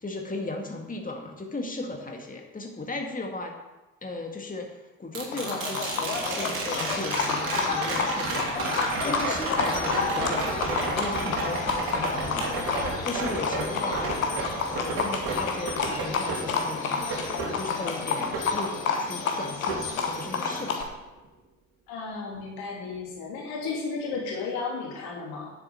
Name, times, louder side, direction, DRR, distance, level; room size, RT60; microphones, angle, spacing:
voice 1, 0.0-3.5 4.0-17.1 17.5-18.7 19.0-20.9, left 2 dB, 20° left, 2 dB, 2.1 m, -36 dB
sound 1, 5.1-19.2 19.7-20.7 23.0-23.1, right 3 dB, 60° right, 2.9 m, -33 dB
Livestock farm animals working animals, 5.3-20.8, left 4 dB, 85° left, 1.2 m, -30 dB
voice 2, 21.9-25.5, left 4 dB, 65° left, -2 dB, 3.0 m, -33 dB
10.0 x 8.1 x 7.1 m, 1.1 s
figure-of-eight pair, 45°, 40 cm